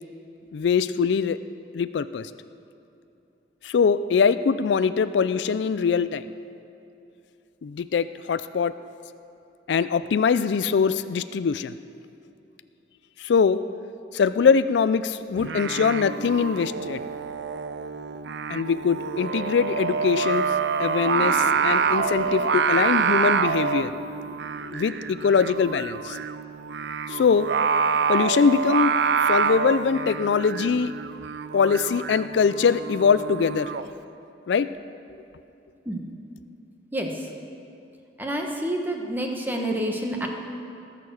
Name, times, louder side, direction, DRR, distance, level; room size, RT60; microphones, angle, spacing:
voice 1, 0.5-1.4 1.7-2.3 3.6-6.3 7.6-8.7 9.7-11.7 13.2-13.6 14.1-17.0 18.5-20.4 20.8-23.9 24.7-26.2 27.1-27.5 28.1-28.9 29.3-30.9 31.5-33.7 34.5-34.7, left 6 dB, 75° left, 13 dB, 0.4 m, -22 dB
Singing, 15.4-33.9, right 6 dB, 70° right, 0.5 m, -26 dB
Gurgling / Sink (filling or washing), 21.0-25.5, equal, 30° left, 3.9 m, -40 dB
voice 2, 36.9-37.3 38.2-40.3, right 1 dB, 10° right, 1 dB, 1.2 m, -28 dB
20.0 x 6.7 x 6.3 m, 2.7 s
head